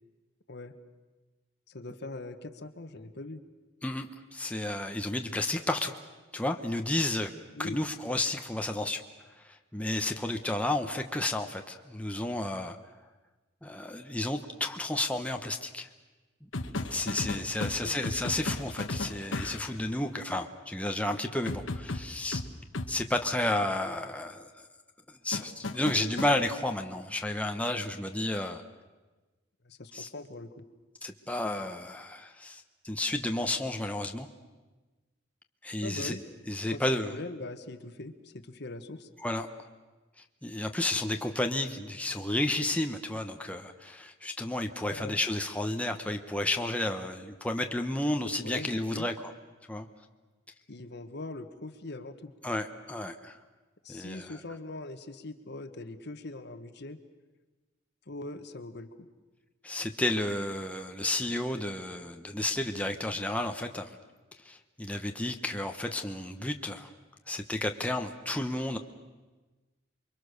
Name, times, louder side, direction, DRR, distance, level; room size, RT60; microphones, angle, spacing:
voice 1, 1.7-3.4 7.5-7.9 17.4-18.0 29.6-30.6 35.8-36.2 36.7-39.1 44.9-45.2 48.4-49.1 50.7-52.3 53.8-57.0 58.1-59.1, left 2 dB, 60° left, 9 dB, 1.4 m, -42 dB
voice 2, 3.8-5.9 6.3-7.3 7.6-9.0 9.4-12.8 13.6-15.9 16.6-22.4 22.9-24.5 25.1-28.6 29.9-30.1 31.0-34.3 35.6-36.2 36.5-37.1 39.2-39.5 40.4-49.1 49.7-49.9 52.4-53.4 53.9-54.4 59.6-63.9 64.4-66.9 67.3-68.8, left 1 dB, 5° left, 4 dB, 1.1 m, -32 dB
sound 1, 16.5-19.8 21.5-22.9 25.3-26.3 28.3-28.5, left 2 dB, 80° left, 1.4 m, -35 dB
28.5 x 23.5 x 6.7 m, 1.2 s
head